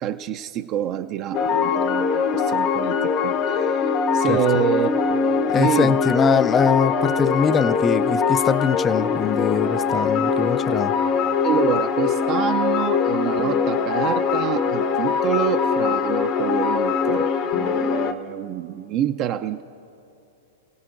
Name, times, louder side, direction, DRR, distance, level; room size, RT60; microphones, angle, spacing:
voice 1, 0.0-5.2 5.5-6.0 11.4-19.6, right 10 dB, 40° right, 7 dB, 0.5 m, -27 dB
sound 1, 1.3-18.1, left 6 dB, 40° left, 0.8 m, -22 dB
voice 2, 5.5-10.9, left 6 dB, 20° left, 15 dB, 0.4 m, -22 dB
30.0 x 17.0 x 2.6 m, 2.8 s
hypercardioid pair, 130°, 0 cm